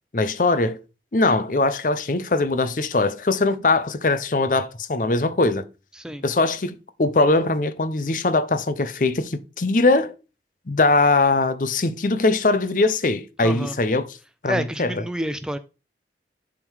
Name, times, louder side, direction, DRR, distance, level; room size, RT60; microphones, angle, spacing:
voice 1, 0.1-0.8 1.1-5.7 6.2-10.1 10.7-14.2 14.4-15.0, left 3 dB, 45° left, 0.6 m, -21 dB
voice 2, 13.4-13.8 14.5-15.6, equal, 5° right, 0.3 m, -28 dB
11.0 x 3.7 x 4.7 m
head